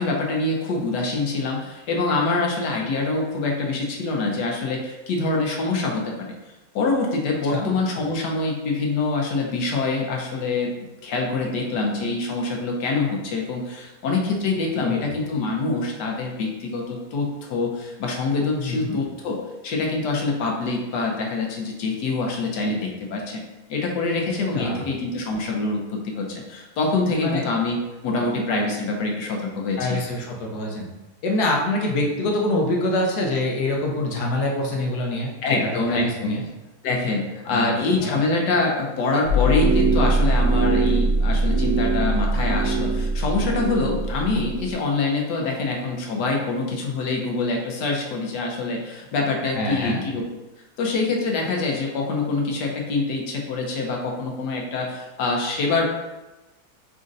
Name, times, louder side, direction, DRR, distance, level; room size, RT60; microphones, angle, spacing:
voice 1, 0.0-6.3 6.7-10.7 11.0-19.4 19.6-23.4 23.7-30.0 35.4-36.4 36.8-50.3 50.8-55.8, left 3 dB, 90° left, 0 dB, 1.4 m, -25 dB
voice 2, 14.8-15.1 18.6-19.0 24.5-24.8 27.2-27.4 29.8-30.9 31.2-36.4 37.5-37.7 38.0-38.2 49.5-50.0, left 1 dB, 70° left, -1 dB, 1.3 m, -25 dB
sound 1, 39.3-44.7, right 2 dB, 55° right, 1.0 m, -21 dB
4.2 x 2.6 x 3.7 m, 1.0 s
omnidirectional pair, 1.8 m